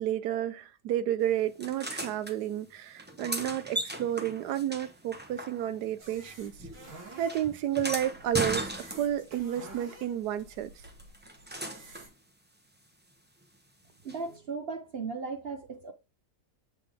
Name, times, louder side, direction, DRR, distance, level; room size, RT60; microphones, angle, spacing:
voice 1, 0.0-6.5 7.2-10.7, right 11 dB, 70° right, 1.2 m, -31 dB
sound 1, 1.6-2.3 3.0-5.9 6.2-9.4 10.8-12.1 14.1-14.2, right 1 dB, 10° right, 0.4 m, -37 dB
sound 2, 6.0-12.1, right 1 dB, 90° right, 2.9 m, -50 dB
voice 2, 14.0-15.9, right 4 dB, 55° right, 0.7 m, -36 dB
7.7 x 3.9 x 3.5 m
omnidirectional pair, 1.9 m